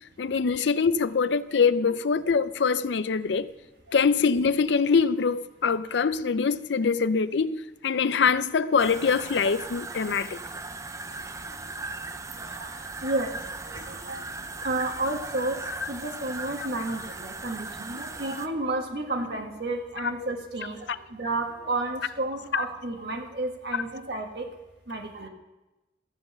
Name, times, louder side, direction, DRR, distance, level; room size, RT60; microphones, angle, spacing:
voice 1, 0.2-3.5 3.9-10.4 22.5-22.6, left 5 dB, 80° left, 0.5 m, -24 dB
sound 1, 8.8-18.5, right 3 dB, 20° right, 0.5 m, -38 dB
voice 2, 12.4-13.3 13.6-14.2 14.6-15.6 15.9-24.5 24.9-25.3, right 2 dB, 65° right, 1.4 m, -31 dB
14.0 x 7.9 x 6.9 m
head